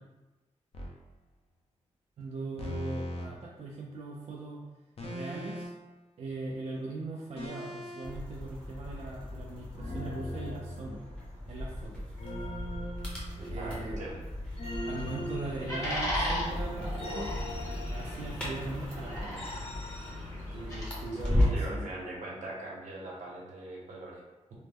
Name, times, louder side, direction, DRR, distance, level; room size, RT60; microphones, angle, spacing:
sound 1, 0.7-1.0 2.6-3.3 5.0-5.9 7.4-8.1 9.8-11.2 12.2-13.8 14.6-16.2 17.0-18.5 19.4-20.1, left 1 dB, 50° left, 0.6 m, -40 dB
voice 1, 2.2-4.6 5.0-5.7 6.2-11.0 11.5-12.1 13.5-14.0 14.9-17.3 17.8-19.6 20.5-21.9, right 2 dB, 50° right, -2 dB, 0.4 m, -40 dB
sound 2, 8.0-21.8, left 1 dB, 10° left, 0.7 m, -36 dB
voice 2, 13.4-14.2 21.5-24.2, right 2 dB, 75° right, -4 dB, 0.9 m, -41 dB
sound 3, 14.5-20.8, equal, 25° left, 1.0 m, -38 dB
3.0 x 2.1 x 3.4 m, 1.1 s
wide cardioid pair, 165°, 13 cm